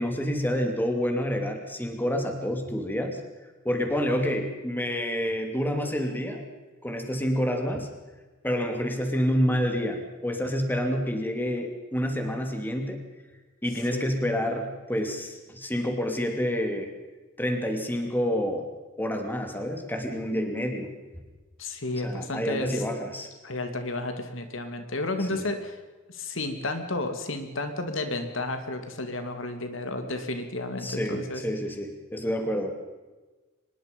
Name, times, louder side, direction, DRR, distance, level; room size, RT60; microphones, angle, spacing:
voice 1, 0.0-3.2 3.6-6.4 6.8-7.9 8.4-13.0 13.6-16.9 17.4-18.6 19.0-20.9 22.0-23.3 25.3-25.4 30.8-32.7, equal, 10° left, 4 dB, 2.7 m, -28 dB
voice 2, 13.9-14.3 21.6-22.8 23.4-25.7 26.1-31.4, left 2 dB, 75° left, 7 dB, 2.5 m, -32 dB
24.5 x 21.0 x 5.4 m, 1.2 s
head